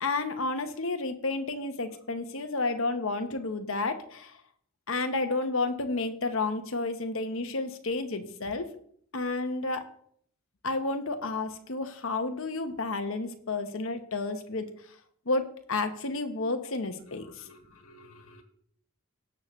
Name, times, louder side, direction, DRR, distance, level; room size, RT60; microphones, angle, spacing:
voice 1, 0.0-4.3 4.9-8.7 9.1-9.9 10.6-14.7 15.3-17.4, left 3 dB, 65° left, 7 dB, 1.0 m, -31 dB
voice 2, 17.0-18.4, left 1 dB, 85° left, 4 dB, 1.9 m, -54 dB
18.5 x 6.6 x 3.2 m, 0.64 s
head